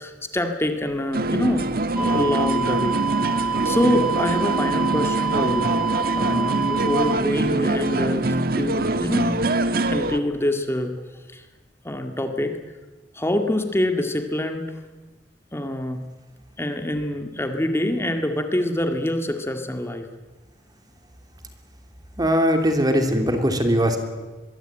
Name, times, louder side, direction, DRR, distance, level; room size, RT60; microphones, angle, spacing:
voice 1, 0.0-1.7 2.0-3.0 3.3-5.8 6.1-9.6 9.9-10.9 11.3-11.5 11.8-12.6 13.1-14.7 15.5-16.0 16.6-20.1, left 1 dB, 15° left, 6 dB, 2.0 m, -25 dB
sound 1, 1.1-10.2, right 2 dB, 60° right, 1.6 m, -24 dB
sound 2, 2.0-7.1, right 6 dB, 5° right, 2.1 m, -27 dB
voice 2, 22.2-24.0, equal, 25° right, 5 dB, 3.2 m, -20 dB
25.5 x 22.5 x 9.0 m, 1.2 s
head